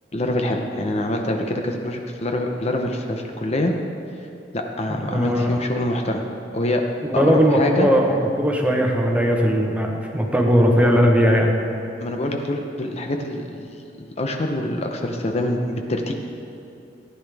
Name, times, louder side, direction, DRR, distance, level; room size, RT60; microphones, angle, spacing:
voice 1, 0.1-3.7 4.5-6.2 6.5-6.8 7.1-7.9 12.0-13.7 14.0-16.1, left 1 dB, 35° left, 3 dB, 0.7 m, -25 dB
voice 2, 4.9-5.6 7.0-11.5, equal, 10° right, 1 dB, 1.0 m, -19 dB
14.5 x 10.0 x 3.4 m, 2.8 s
head